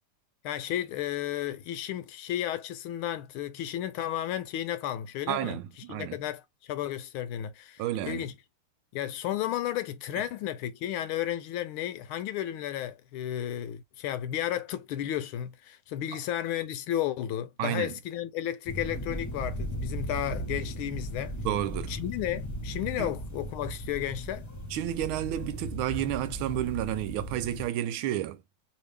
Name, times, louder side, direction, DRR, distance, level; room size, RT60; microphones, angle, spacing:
voice 1, 0.4-5.6 5.9-8.3 8.9-21.3 21.9-24.5, left 12 dB, 80° left, 1.5 m, -33 dB
voice 2, 5.3-6.2 7.8-8.3 17.6-17.9 21.4-22.0 23.0-23.1 24.7-28.4, right 12 dB, 80° right, 1.4 m, -31 dB
sound 1, 18.7-27.7, equal, 15° left, 0.6 m, -37 dB
3.2 x 2.7 x 3.3 m
omnidirectional pair, 2.3 m